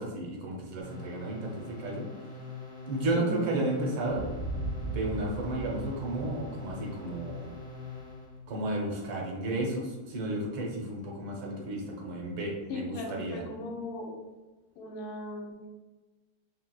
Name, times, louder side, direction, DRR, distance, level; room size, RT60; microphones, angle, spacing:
voice 1, 0.0-2.1 2.3-2.4 2.9-4.3 4.8-7.5 8.5-13.4, right 2 dB, 70° right, -1 dB, 1.4 m, -33 dB
sound 1, 0.8-8.4, left 4 dB, 35° left, 0.6 m, -43 dB
voice 2, 3.1-3.4 12.7-14.2 14.8-15.8, left 1 dB, 80° left, 1 dB, 1.5 m, -38 dB
sound 2, 4.1-8.7, right 2 dB, 55° left, 1.1 m, -39 dB
4.5 x 3.3 x 2.2 m, 1.2 s
omnidirectional pair, 2.3 m